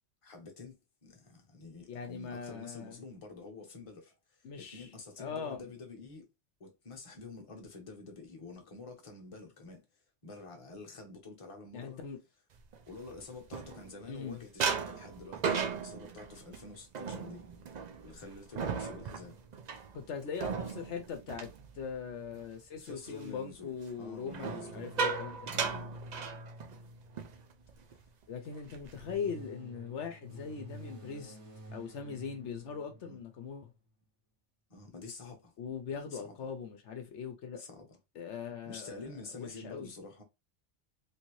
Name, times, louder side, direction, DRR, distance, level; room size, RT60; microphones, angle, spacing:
voice 1, 0.2-6.3 6.6-9.9 10.2-12.0 12.9-17.5 18.0-19.4 22.8-23.7 24.0-25.0 25.5-25.9 28.9-29.1 33.0-33.2 34.7-35.5 36.1-36.5 37.6-38.0 38.7-40.2, left 3 dB, 30° left, 0.9 m, -48 dB
voice 2, 1.9-3.0 4.4-4.9 5.2-5.7 11.7-12.2 14.1-14.4 19.9-25.5 28.3-31.4 31.7-33.7 35.6-37.6 38.2-39.0 39.3-39.9, left 6 dB, 70° left, 0.9 m, -41 dB
sound 1, 12.7-14.2 14.6-22.4 22.8-23.1 24.3-26.9 27.2-27.4 27.7-28.0 28.5-29.1, right 5 dB, 50° right, 0.5 m, -37 dB
sound 2, 24.4-27.8 28.7-33.5, equal, 70° right, 1.4 m, -50 dB
3.3 x 2.7 x 3.0 m
omnidirectional pair, 1.3 m